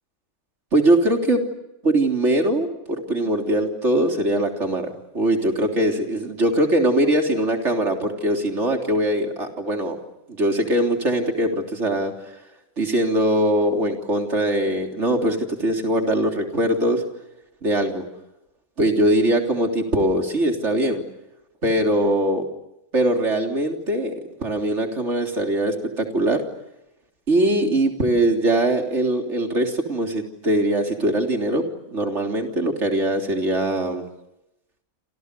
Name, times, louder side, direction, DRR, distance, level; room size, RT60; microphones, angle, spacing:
voice 1, 0.7-1.4 1.8-4.9 5.1-10.0 10.3-12.1 12.8-17.0 17.6-18.0 18.8-21.0 21.6-22.5 22.9-24.1 24.4-26.4 27.3-34.0, right 1 dB, 50° right, 3 dB, 3.8 m, -21 dB
28.5 x 28.0 x 6.9 m, 0.89 s
omnidirectional pair, 1.5 m